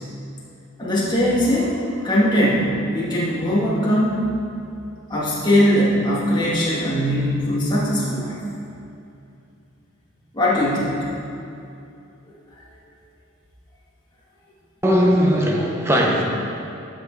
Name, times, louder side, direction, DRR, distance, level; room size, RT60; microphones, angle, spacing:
voice 1, 0.8-1.8 2.0-4.3 5.1-8.4 10.3-11.1, equal, 20° left, -7 dB, 2.2 m, -20 dB
voice 2, 14.8-16.2, equal, 10° right, -1 dB, 1.1 m, -18 dB
12.0 x 6.3 x 4.9 m, 2.6 s
head